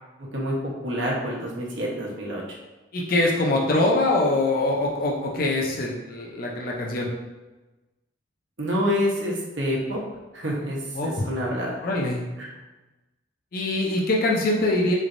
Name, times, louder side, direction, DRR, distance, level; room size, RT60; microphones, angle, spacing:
voice 1, 0.8-2.4 8.6-10.0 10.3-11.8 12.4-12.5, equal, 75° right, -3 dB, 1.0 m, -27 dB
voice 2, 2.9-7.1 11.0-11.3 11.8-12.3 13.5-14.9, left 2 dB, 50° left, -1 dB, 0.5 m, -23 dB
4.1 x 3.2 x 2.5 m, 1.1 s
head